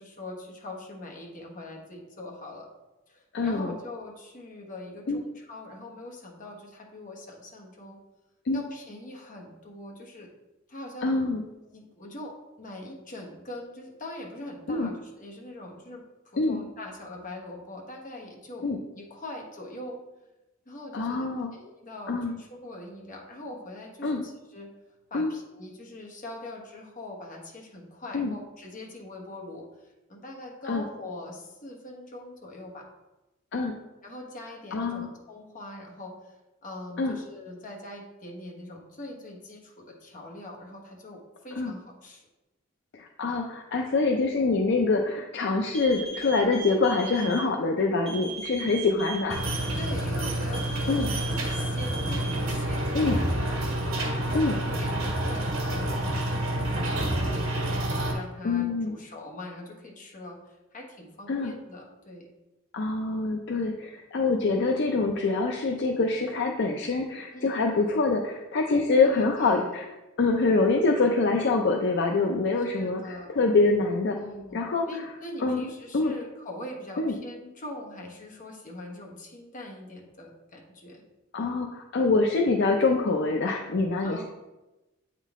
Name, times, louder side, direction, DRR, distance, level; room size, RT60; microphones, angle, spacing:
voice 1, 0.0-2.7 3.1-8.0 8.5-10.3 10.7-11.1 11.7-18.7 18.9-20.0 20.6-24.7 25.1-32.8 34.0-36.3 36.6-42.2 49.8-53.5 53.9-62.3 67.3-68.1 69.0-69.7 72.6-73.3 74.1-81.0 84.0-84.2, left 1 dB, 40° left, 0 dB, 1.1 m, -42 dB
voice 2, 3.3-3.8 5.1-5.2 8.5-8.6 11.0-11.4 14.7-14.9 16.4-16.6 18.6-18.8 20.9-21.5 22.1-22.4 24.0-24.2 25.1-25.3 28.1-28.3 30.7-30.8 33.5-33.8 34.7-35.1 37.0-37.1 41.6-41.7 42.9-49.4 50.9-51.1 52.9-53.2 54.3-54.6 58.4-59.0 61.3-61.5 62.7-69.8 70.2-74.2 74.5-74.9 75.4-75.7 75.9-76.1 77.0-77.2 81.3-84.2, left 3 dB, 60° left, 2 dB, 0.5 m, -25 dB
sound 1, 45.7-47.4 48.1-49.9 50.5-52.3, right 3 dB, 5° left, 2.3 m, -39 dB
sound 2, 49.3-58.1, right 1 dB, 85° right, 1.3 m, -28 dB
8.3 x 3.8 x 3.6 m, 1.0 s
head